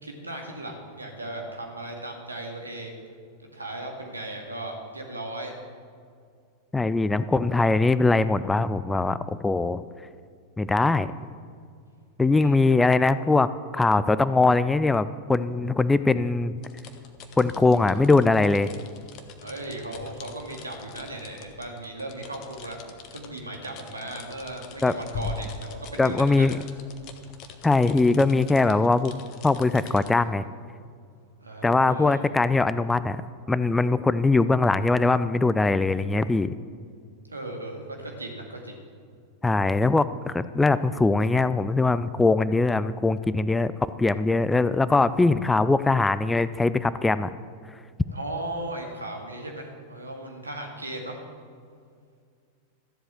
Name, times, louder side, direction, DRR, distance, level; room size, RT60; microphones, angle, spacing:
voice 1, 0.0-3.0 3.5-5.6 12.4-12.6 19.4-22.8 23.1-26.5 31.4-32.2 37.3-38.8 48.1-51.2, right 1 dB, 80° right, 2 dB, 2.1 m, -37 dB
voice 2, 6.7-9.8 10.6-11.1 12.2-13.5 13.7-16.6 17.4-18.7 24.8-24.9 26.0-26.6 27.6-30.5 31.6-33.2 33.5-36.5 39.4-43.7 44.0-47.3, left 3 dB, 10° left, 15 dB, 0.4 m, -21 dB
sound 1, 16.6-30.1, left 4 dB, 40° left, 1.2 m, -42 dB
13.5 x 7.9 x 7.6 m, 2.2 s
figure-of-eight pair, 90°, 0 cm